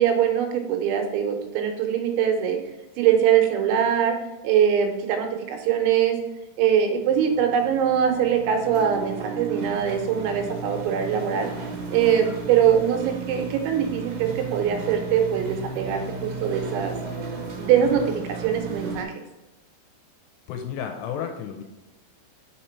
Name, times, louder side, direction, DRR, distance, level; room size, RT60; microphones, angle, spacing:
voice 1, 0.0-2.6 3.0-4.2 4.4-6.2 6.6-11.5 11.9-16.9 17.6-19.1, right 8 dB, 85° right, 4 dB, 3.1 m, -22 dB
sound 1, 7.0-19.0, right 3 dB, 60° right, 2.3 m, -35 dB
voice 2, 20.5-21.6, left 8 dB, 80° left, 4 dB, 2.6 m, -32 dB
5.7 x 5.0 x 4.3 m, 1.0 s
omnidirectional pair, 5.2 m